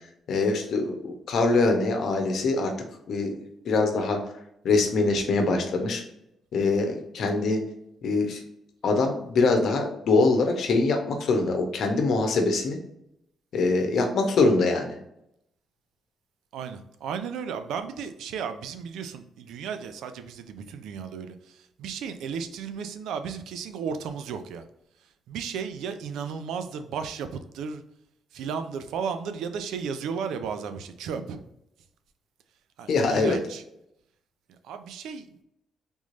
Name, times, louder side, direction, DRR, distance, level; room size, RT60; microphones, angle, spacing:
voice 1, 0.3-2.7 3.1-3.3 3.6-4.2 4.6-6.0 6.5-7.6 8.0-8.4 8.8-12.8 13.5-14.9 32.9-33.4, left 3 dB, 65° left, 4 dB, 0.9 m, -23 dB
voice 2, 16.5-24.7 25.3-27.8 28.3-31.5 32.8-33.6 34.6-35.4, right 6 dB, 85° right, 9 dB, 0.4 m, -34 dB
3.5 x 3.1 x 2.6 m, 0.80 s
cardioid pair, 90°, 0 cm